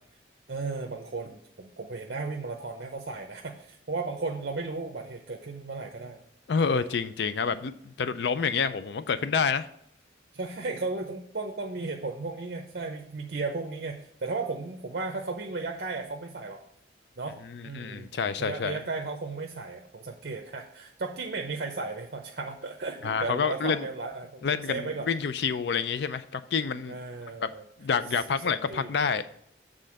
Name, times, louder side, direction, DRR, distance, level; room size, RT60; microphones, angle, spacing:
voice 1, 0.5-6.2 6.6-6.8 10.3-16.6 17.2-17.4 17.6-18.1 18.4-25.1 26.9-27.6 28.4-28.9, right 3 dB, 60° right, 2 dB, 0.7 m, -35 dB
voice 2, 6.5-9.7 17.5-18.8 23.0-23.9 24.4-27.0 27.4-27.5 27.8-29.2, left 6 dB, 70° left, 13 dB, 0.4 m, -28 dB
7.7 x 3.8 x 6.3 m, 0.71 s
head